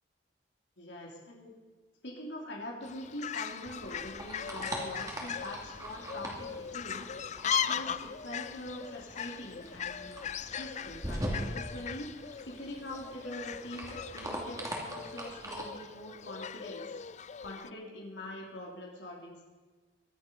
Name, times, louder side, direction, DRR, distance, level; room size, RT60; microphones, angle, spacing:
voice 1, 0.8-1.5 2.0-7.0 7.4-10.1 10.5-12.1 12.4-16.8 17.4-19.5, left 1 dB, 90° left, -2 dB, 3.4 m, -43 dB
Fowl, 2.8-17.7, left 7 dB, 40° left, 0.4 m, -39 dB
sound 1, 3.6-15.6, right 1 dB, 20° right, 2.7 m, -42 dB
23.0 x 8.8 x 5.5 m, 1.3 s
head